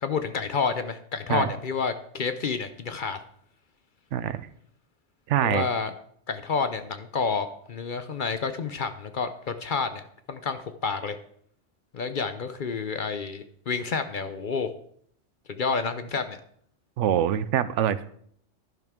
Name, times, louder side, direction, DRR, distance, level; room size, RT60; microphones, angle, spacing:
voice 1, 0.0-3.2 5.4-5.9 6.3-11.2 11.9-14.7 15.5-16.4, left 5 dB, 50° left, 10 dB, 0.7 m, -29 dB
voice 2, 4.1-4.5 5.3-5.7 17.0-18.1, right 10 dB, 75° right, 14 dB, 0.9 m, -24 dB
11.0 x 10.5 x 3.6 m, 0.64 s
omnidirectional pair, 1.2 m